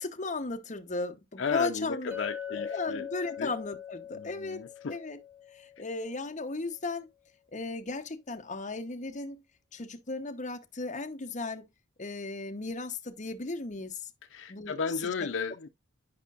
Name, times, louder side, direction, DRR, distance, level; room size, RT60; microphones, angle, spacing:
voice 1, 0.0-2.1 2.5-5.2 5.5-7.1 7.5-9.4 9.7-11.7 12.0-14.0 14.5-14.8 15.2-15.3, left 3 dB, 35° left, 0.9 m, -36 dB
voice 2, 1.4-3.1 3.4-3.5 4.1-5.0 14.3-15.7, left 5 dB, 60° left, 0.5 m, -34 dB
Chink clink, 2.1-6.3, left 9 dB, 10° right, 1.4 m, -42 dB
11.0 x 5.1 x 2.4 m
head